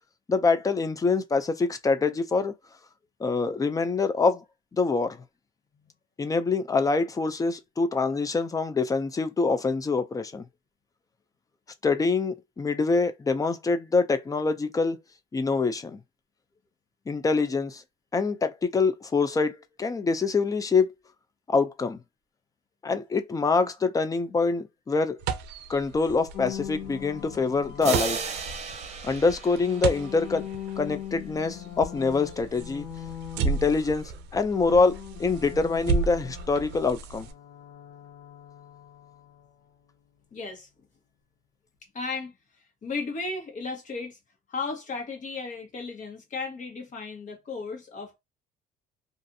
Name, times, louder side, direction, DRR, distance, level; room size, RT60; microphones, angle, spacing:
voice 1, 0.3-2.5 3.2-4.4 4.7-5.2 6.2-10.4 11.8-15.0 15.3-16.0 17.1-17.8 18.1-20.9 21.5-22.0 22.8-25.2 25.7-28.2 29.0-30.4 30.8-32.9 33.4-37.3, left 4 dB, 20° left, 0.4 m, -25 dB
sound 1, 25.2-37.3, right 5 dB, 85° right, 0.5 m, -34 dB
sound 2, 26.3-28.8 29.4-34.3 34.5-39.5, left 10 dB, 90° left, 0.8 m, -41 dB
sound 3, 27.8-30.5, right 6 dB, 40° right, 0.7 m, -34 dB
voice 2, 40.3-40.7 41.9-44.2 44.5-48.2, left 4 dB, 50° left, 1.3 m, -35 dB
2.5 x 2.5 x 2.6 m
cardioid pair, 110°, 17 cm